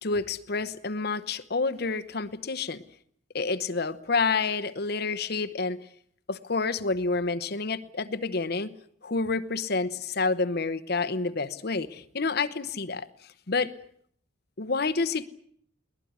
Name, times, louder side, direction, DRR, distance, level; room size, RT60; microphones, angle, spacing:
voice 1, 0.0-2.8 3.3-5.8 6.3-8.7 9.0-13.1 13.5-13.7 14.6-15.2, left 4 dB, 55° left, 12 dB, 1.0 m, -28 dB
22.0 x 19.5 x 9.6 m, 0.64 s
head